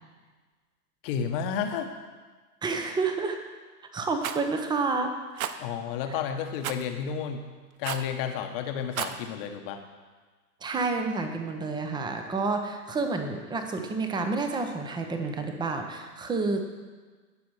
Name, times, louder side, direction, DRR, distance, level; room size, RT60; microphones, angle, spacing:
voice 1, 1.0-1.9 5.6-7.4 7.8-9.8, left 7 dB, 35° left, 6 dB, 1.2 m, -31 dB
voice 2, 2.6-3.4 3.9-5.6 10.6-16.9, right 3 dB, 10° right, 5 dB, 0.9 m, -29 dB
Rattle, 4.2-4.4 5.4-5.6 6.6-6.9 7.8-8.1 8.8-9.2, right 9 dB, 60° right, 0.8 m, -32 dB
18.0 x 6.1 x 4.8 m, 1.4 s
hypercardioid pair, 120°, 47 cm